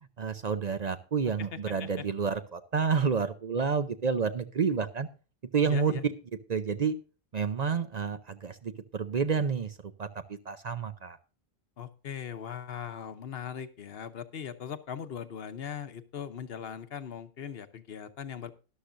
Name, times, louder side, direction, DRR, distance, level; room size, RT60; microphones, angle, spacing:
voice 1, 0.2-5.1 5.5-6.1 6.5-7.0 7.3-11.2, right 5 dB, 45° right, 10 dB, 0.6 m, -29 dB
voice 2, 5.6-6.0 11.8-18.5, left 8 dB, 65° left, 11 dB, 1.0 m, -39 dB
13.0 x 11.5 x 2.6 m, 0.34 s
omnidirectional pair, 1.1 m